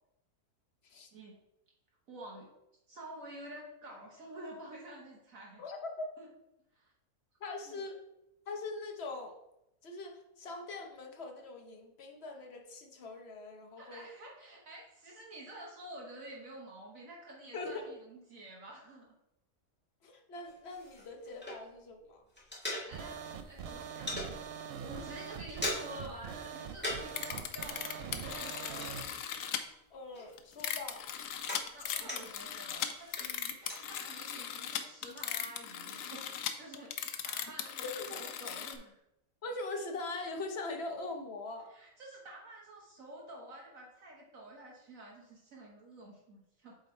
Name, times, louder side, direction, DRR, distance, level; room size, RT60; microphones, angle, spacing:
voice 1, 2.1-2.5 2.9-5.6 6.2-6.3 6.7-6.9 7.7-7.8 13.8-19.1 22.8-29.1 31.7-39.0 41.7-46.8, right 1 dB, 60° right, -2 dB, 1.4 m, -49 dB
voice 2, 5.6-6.1 7.4-8.0 8.5-9.3 9.8-14.1 17.5-17.9 20.0-22.2 29.9-31.0 37.8-38.2 39.4-41.7, left 3 dB, 50° left, 3 dB, 1.0 m, -42 dB
sound 1, 20.4-21.9 22.2-23.3 23.6-24.3 24.8-24.9 25.2-26.1 26.4-27.2 27.5-29.8 30.1-32.5 32.9-33.8, left 1 dB, 5° left, 1.8 m, -41 dB
sound 2, 22.9-29.0, right 7 dB, 85° right, 0.5 m, -43 dB
sound 3, 27.1-29.6 30.4-38.8, left 9 dB, 90° left, 1.2 m, -38 dB
7.6 x 3.6 x 4.3 m, 0.87 s
omnidirectional pair, 1.6 m